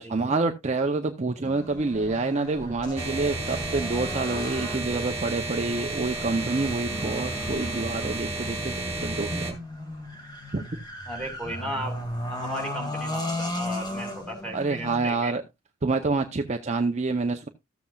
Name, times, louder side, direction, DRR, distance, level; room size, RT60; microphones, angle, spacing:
voice 1, 0.1-9.6 10.5-10.6 14.5-15.4 15.8-17.5, right 3 dB, 30° right, 0.6 m, -27 dB
sound 1, 1.4-15.1, left 1 dB, 20° left, 1.7 m, -36 dB
sound 2, 3.0-9.5, right 2 dB, 15° right, 2.3 m, -32 dB
voice 2, 11.1-15.3, equal, 5° left, 2.9 m, -35 dB
14.0 x 7.5 x 2.3 m
head